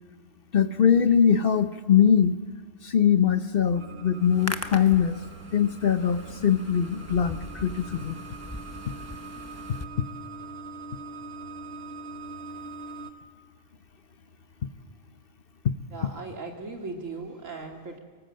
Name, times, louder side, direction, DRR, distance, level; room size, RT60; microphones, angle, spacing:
voice 1, 0.5-2.4 2.8-5.2 5.5-8.2 16.0-16.1, left 8 dB, 50° left, 11 dB, 1.0 m, -22 dB
sound 1, 3.7-13.1, right 3 dB, 55° right, 1.3 m, -42 dB
Hands, 4.2-9.8, left 2 dB, 15° left, 0.8 m, -40 dB
voice 2, 15.9-18.0, right 3 dB, 80° right, 2 dB, 3.2 m, -38 dB
24.5 x 19.5 x 7.7 m, 1.5 s
omnidirectional pair, 1.3 m